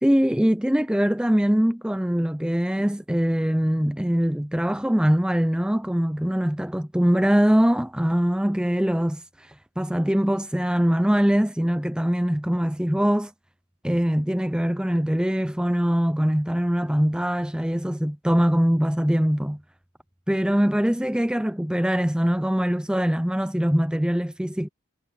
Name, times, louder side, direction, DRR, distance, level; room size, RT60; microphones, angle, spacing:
voice 1, 0.0-13.3 13.8-19.6 20.3-24.7, equal, 5° right, 0.4 m, -22 dB
head